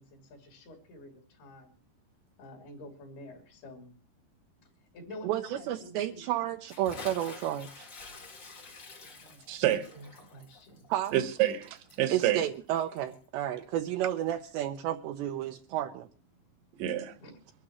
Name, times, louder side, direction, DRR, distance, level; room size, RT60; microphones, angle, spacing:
voice 1, 0.0-1.7 2.4-3.9 4.9-6.3 9.2-10.9 17.2-17.4, left 1 dB, 60° left, 5.0 m, -49 dB
voice 2, 5.2-7.9 10.9-11.1 12.1-16.1, right 12 dB, 80° right, 2.9 m, -32 dB
Bathtub (filling or washing) / Splash splatter, 6.7-13.3, left 3 dB, 40° left, 1.6 m, -49 dB
voice 3, 9.5-9.9 11.1-12.5 16.8-17.1, right 12 dB, 60° right, 2.6 m, -28 dB
24.0 x 12.5 x 3.1 m
omnidirectional pair, 5.2 m